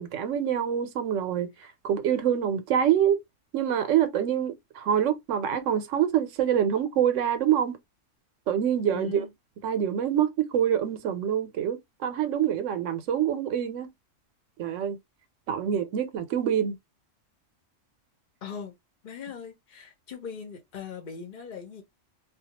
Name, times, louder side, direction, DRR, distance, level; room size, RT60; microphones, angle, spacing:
voice 1, 0.0-1.5 1.8-3.2 3.5-7.8 8.5-9.2 9.6-13.9 14.6-15.0 15.5-16.8, right 9 dB, 80° right, 0.9 m, -26 dB
voice 2, 8.9-9.3 18.4-18.7 19.0-21.8, left 6 dB, 50° left, 0.9 m, -40 dB
2.3 x 2.2 x 2.8 m
omnidirectional pair, 1.3 m